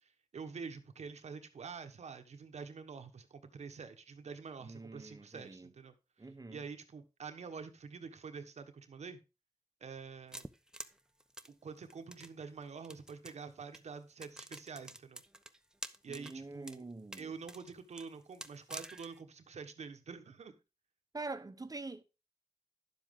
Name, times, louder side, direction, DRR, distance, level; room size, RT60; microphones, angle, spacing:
voice 1, 0.0-5.9 6.5-9.2 9.8-10.4 11.5-15.2 16.0-16.8 17.2-20.6, right 5 dB, 85° right, 1.2 m, -47 dB
voice 2, 4.6-5.7 6.2-6.6 16.1-17.3 21.1-22.0, right 3 dB, 35° right, 0.9 m, -45 dB
sound 1, 10.3-12.3 12.8-13.4 13.7-13.8 14.2-16.3 16.6-16.8 17.1-19.2, right 1 dB, 5° right, 0.7 m, -47 dB
10.5 x 7.4 x 3.7 m
cardioid pair, 65°, 11 cm